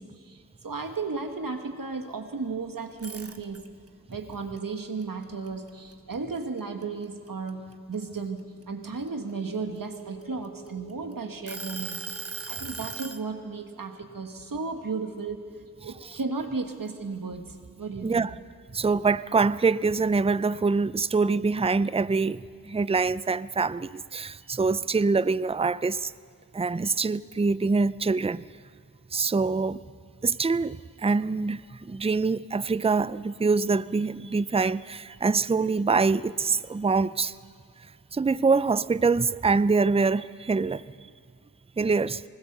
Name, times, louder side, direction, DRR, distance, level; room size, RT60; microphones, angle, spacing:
voice 1, 0.0-3.7 4.1-12.0 12.5-15.5 15.8-18.2, right 4 dB, 70° right, 1.6 m, -34 dB
sound 1, 2.9-3.9 4.3-6.1 6.6-6.8 7.3-9.1 9.8-10.9 11.5-13.2, right 4 dB, 40° right, 1.1 m, -38 dB
sound 2, 9.0-16.3, right 3 dB, 75° left, 6.9 m, -50 dB
voice 2, 18.0-18.3 18.7-26.1 26.5-28.4 29.1-29.8 30.2-37.3 38.1-40.8 41.8-42.2, right 4 dB, 15° right, 0.5 m, -25 dB
20.0 x 20.0 x 6.8 m
cardioid pair, 40°, 35 cm